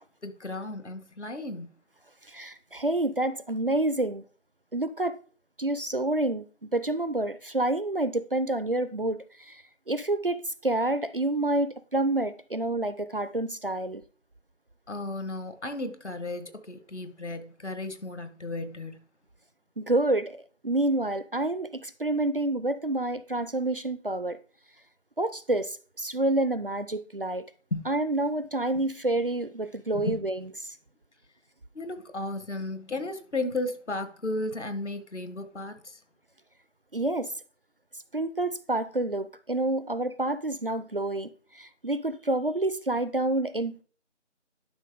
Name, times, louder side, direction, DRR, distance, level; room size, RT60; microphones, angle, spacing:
voice 1, 0.2-1.7 14.9-19.0 27.7-27.9 28.7-28.8 29.9-30.2 31.7-36.0, left 2 dB, 70° left, 1.4 m, -34 dB
voice 2, 2.3-4.2 4.7-5.2 5.6-14.0 19.8-20.4 20.6-24.4 25.2-27.5 27.9-30.4 36.9-37.3 38.1-43.8, right 2 dB, 50° right, 0.4 m, -28 dB
11.0 x 5.5 x 3.5 m
figure-of-eight pair, 170°, 36 cm